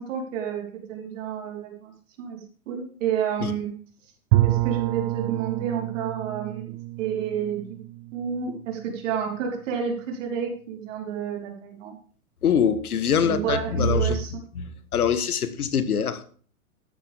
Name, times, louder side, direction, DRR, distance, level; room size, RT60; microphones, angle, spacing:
voice 1, 0.0-1.9 2.2-2.4 2.7-3.7 4.4-6.7 7.0-7.6 8.1-11.9 13.2-14.3, right 8 dB, 55° right, 0 dB, 4.4 m, -30 dB
Bowed string instrument, 4.3-9.1, right 17 dB, 30° right, 0.5 m, -28 dB
voice 2, 12.4-14.2 14.5-16.4, left 6 dB, 85° left, 13 dB, 1.6 m, -24 dB
13.0 x 10.5 x 3.6 m, 0.44 s
hypercardioid pair, 125°, 43 cm